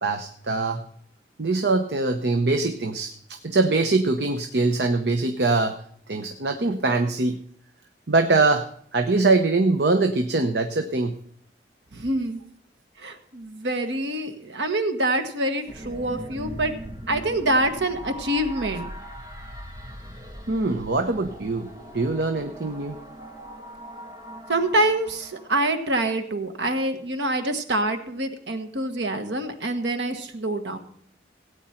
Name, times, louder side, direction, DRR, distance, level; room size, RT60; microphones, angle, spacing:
voice 1, 0.0-0.8 1.4-5.8 6.1-7.4 8.1-8.7 8.9-11.2 20.5-21.7 21.9-23.0, right 3 dB, 70° right, 7 dB, 0.8 m, -23 dB
voice 2, 11.9-12.4 13.0-16.7 17.1-18.9 24.5-30.8, right 1 dB, 85° right, 6 dB, 1.5 m, -26 dB
sound 1, 15.7-26.1, equal, 20° right, 1.4 m, -40 dB
17.0 x 9.3 x 4.4 m, 0.64 s
head